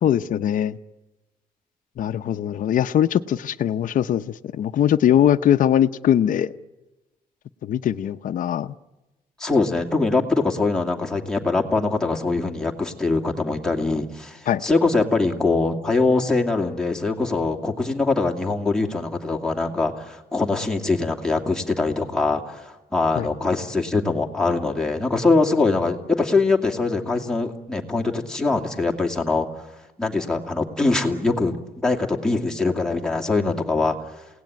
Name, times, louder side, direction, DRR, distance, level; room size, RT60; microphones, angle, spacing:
voice 1, 0.0-0.8 2.0-4.2 4.5-6.5 7.6-8.7 14.5-14.6 23.2-23.3, left 10 dB, 60° left, 9 dB, 0.8 m, -21 dB
voice 2, 9.4-29.5 30.0-31.6 31.8-34.0, left 3 dB, 5° left, 0 dB, 2.5 m, -23 dB
28.5 x 18.0 x 9.4 m, 1.1 s
cardioid pair, 140°, 16 cm